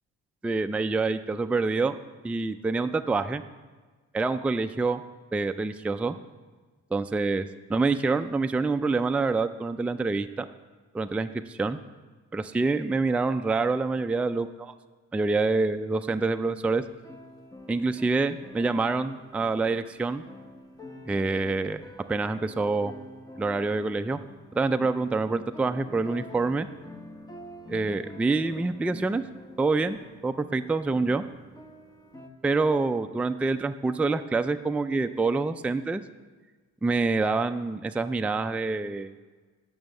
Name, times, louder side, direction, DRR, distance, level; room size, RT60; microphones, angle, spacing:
voice 1, 0.4-2.0 2.2-3.4 4.1-5.0 5.3-6.2 6.9-10.5 10.9-11.8 12.3-14.7 15.1-16.8 17.7-20.2 21.1-21.8 22.1-22.9 23.4-24.2 24.6-26.7 27.7-29.2 29.6-30.0 30.2-31.2 32.4-36.0 36.8-39.1, right 3 dB, 5° right, 8 dB, 0.3 m, -26 dB
sound 1, 16.9-32.3, left 1 dB, 10° left, 1.1 m, -47 dB
8.9 x 6.2 x 6.5 m, 1.3 s
cardioid pair, 90°, 30 cm